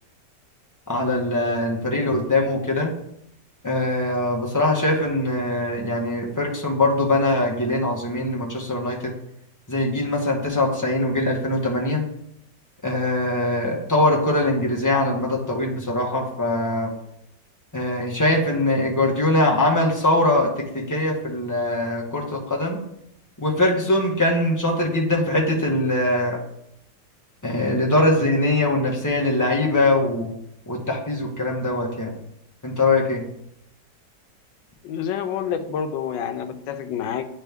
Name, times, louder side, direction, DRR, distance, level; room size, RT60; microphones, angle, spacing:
voice 1, 0.9-2.9 3.6-9.1 9.7-12.0 12.8-16.9 17.7-22.8 23.4-26.4 27.4-30.3 30.7-32.1 32.6-33.2, left 2 dB, 15° left, -2 dB, 0.6 m, -22 dB
voice 2, 34.8-37.3, left 8 dB, 85° left, 9 dB, 1.3 m, -28 dB
9.2 x 3.4 x 3.4 m, 0.76 s
omnidirectional pair, 1.9 m